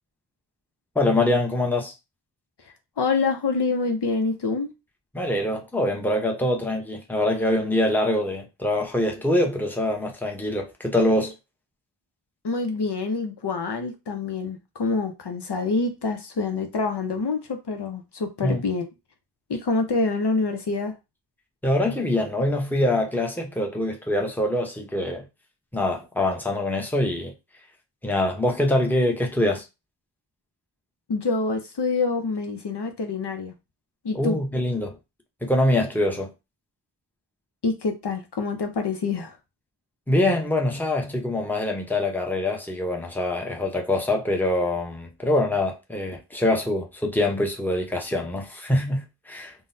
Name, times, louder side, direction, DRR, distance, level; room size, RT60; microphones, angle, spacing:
voice 1, 0.9-1.9 5.1-11.4 18.4-18.6 21.6-25.3 25.7-27.3 28.0-29.6 34.1-35.0 35.4-36.3 40.1-49.5, left 1 dB, 5° left, 0.8 m, -24 dB
voice 2, 3.0-4.7 12.4-18.9 19.5-20.9 31.1-33.5 34.0-34.4 37.6-39.4, left 4 dB, 70° left, 0.7 m, -26 dB
3.7 x 2.1 x 2.6 m
wide cardioid pair, 45°, 43 cm